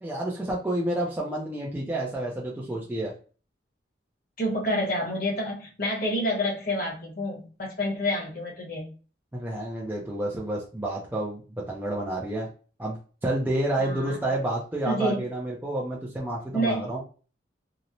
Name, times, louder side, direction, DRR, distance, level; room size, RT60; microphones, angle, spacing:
voice 1, 0.0-3.1 9.3-11.4 11.7-12.5 12.8-17.0, right 1 dB, 10° right, -4 dB, 0.4 m, -29 dB
voice 2, 4.4-8.9 13.8-14.2 14.8-15.2 16.5-17.0, equal, 50° left, -2 dB, 1.0 m, -28 dB
2.9 x 2.0 x 2.5 m, 0.37 s
head